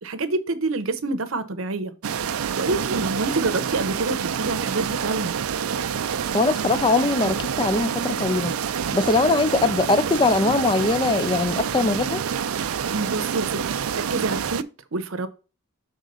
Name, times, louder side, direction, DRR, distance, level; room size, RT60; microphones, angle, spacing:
voice 1, 0.0-1.9 2.3-5.4 12.9-15.3, right 3 dB, 70° right, 0.8 m, -27 dB
sound 1, 2.0-14.6, right 7 dB, 85° right, 0.5 m, -27 dB
voice 2, 6.3-8.5 8.9-12.2, left 3 dB, 20° left, 0.4 m, -21 dB
6.6 x 3.7 x 5.3 m
head